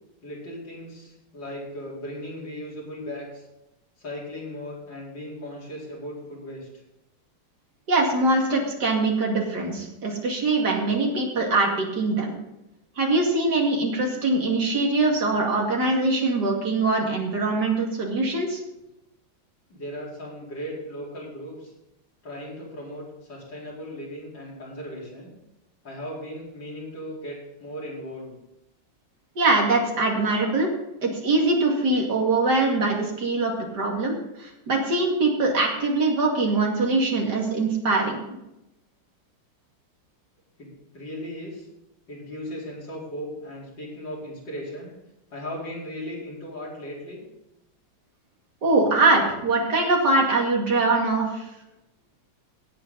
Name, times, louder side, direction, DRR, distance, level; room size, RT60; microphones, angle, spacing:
voice 1, 0.2-3.5 4.0-6.7 19.7-21.7 22.2-25.3 25.8-28.3 40.6-41.7 42.1-44.9 45.3-47.2, equal, 60° left, -6 dB, 5.4 m, -37 dB
voice 2, 7.9-12.4 13.0-18.6 29.4-30.7 31.0-38.2 48.6-51.5, right 2 dB, 55° right, -1 dB, 3.0 m, -23 dB
17.5 x 8.4 x 4.1 m, 0.90 s
omnidirectional pair, 2.2 m